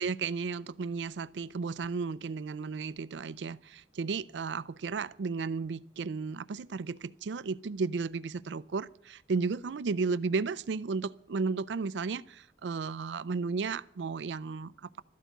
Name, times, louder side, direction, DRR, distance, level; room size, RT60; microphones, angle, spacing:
voice 1, 0.0-15.0, right 4 dB, 85° right, 0.4 m, -34 dB
13.5 x 8.3 x 9.2 m
head